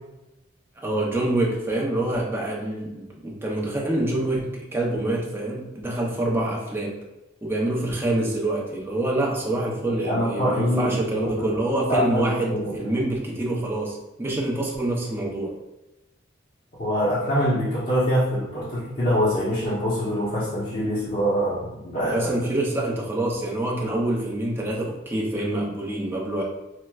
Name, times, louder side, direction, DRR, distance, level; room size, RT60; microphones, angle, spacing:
voice 1, 0.8-7.1 7.4-15.5 22.1-26.4, right 1 dB, 10° right, -2 dB, 0.5 m, -26 dB
voice 2, 10.0-10.9 11.9-13.0 16.8-22.3, equal, 40° left, -9 dB, 0.8 m, -24 dB
4.4 x 2.1 x 2.3 m, 1.0 s
head